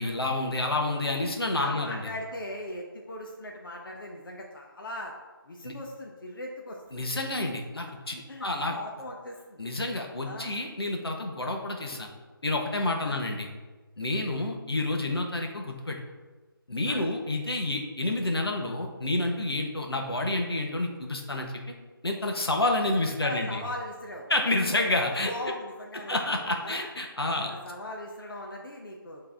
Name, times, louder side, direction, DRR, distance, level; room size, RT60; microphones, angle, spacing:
voice 1, 0.0-2.0 5.6-5.7 6.9-8.7 9.6-12.1 12.4-13.5 14.0-16.0 16.7-21.5 22.0-23.6 24.3-25.3 25.9-27.5, left 2 dB, 85° left, 2 dB, 1.2 m, -29 dB
voice 2, 1.5-5.1 5.5-7.0 8.3-9.7 10.2-10.6 13.0-13.2 16.9-17.1 23.2-24.3 25.0-26.1 26.6-26.9 27.5-29.2, left 1 dB, 60° left, 0 dB, 0.9 m, -39 dB
8.6 x 3.5 x 3.5 m, 1.3 s
figure-of-eight pair, 160°, 12 cm